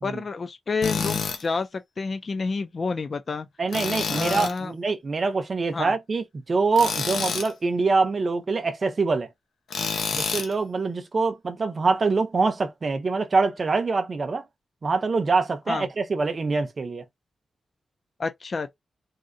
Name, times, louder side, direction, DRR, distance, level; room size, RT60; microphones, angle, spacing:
voice 1, 0.0-3.5 4.1-4.7 5.7-5.9 15.7-15.8 18.2-18.7, left 4 dB, 40° left, 0.4 m, -29 dB
Tools, 0.8-1.4 3.7-4.6 6.7-7.5 9.7-10.5, left 5 dB, 90° left, 0.8 m, -28 dB
voice 2, 3.6-9.3 10.1-14.5 14.8-17.0, right 4 dB, 35° right, 0.6 m, -24 dB
3.6 x 2.5 x 2.6 m
wide cardioid pair, 165°, 0 cm